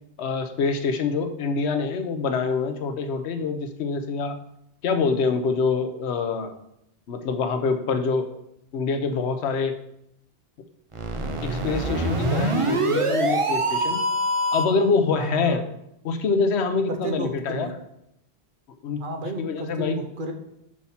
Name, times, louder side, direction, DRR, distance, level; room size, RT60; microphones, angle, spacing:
voice 1, 0.2-4.4 4.8-6.5 7.1-8.3 8.7-9.7 11.4-14.0 14.5-15.6 16.0-17.8 18.8-19.0 19.4-20.0, left 4 dB, 85° left, 8 dB, 1.0 m, -25 dB
sound 1, 10.9-14.8, right 2 dB, 35° right, 0.7 m, -24 dB
voice 2, 15.1-15.6 16.9-17.7 19.0-20.3, right 2 dB, 55° right, 4 dB, 1.0 m, -32 dB
6.2 x 4.1 x 5.6 m, 0.79 s
omnidirectional pair, 1.1 m